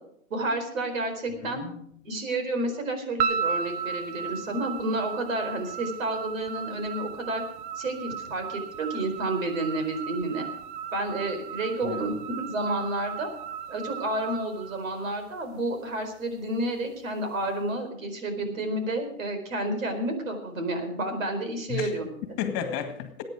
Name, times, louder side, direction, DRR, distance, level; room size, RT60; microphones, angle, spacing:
voice 1, 0.3-1.6 2.0-7.4 7.8-10.4 10.9-13.3 13.7-22.4, right 2 dB, 75° right, 6 dB, 4.6 m, -30 dB
voice 2, 1.4-1.8 11.8-12.2 21.7-21.9 22.2-23.2, left 8 dB, 35° left, 8 dB, 1.9 m, -33 dB
sound 1, 3.2-15.5, right 7 dB, 30° right, 0.6 m, -35 dB
21.0 x 9.5 x 4.9 m, 0.70 s
hypercardioid pair, 125°, 40 cm